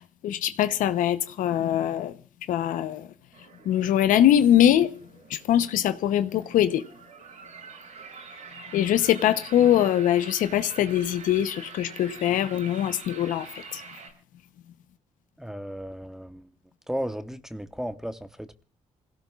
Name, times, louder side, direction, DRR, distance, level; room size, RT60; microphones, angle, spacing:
voice 1, 0.0-2.1 2.5-3.1 3.6-5.0 5.3-6.8 8.7-13.8, left 11 dB, 85° left, 0.8 m, -22 dB
sound 1, 3.3-14.1, right 5 dB, 75° right, 7.1 m, -46 dB
voice 2, 15.4-16.5 16.9-18.6, equal, 5° right, 1.0 m, -35 dB
27.5 x 17.0 x 2.4 m
cardioid pair, 85°, 13 cm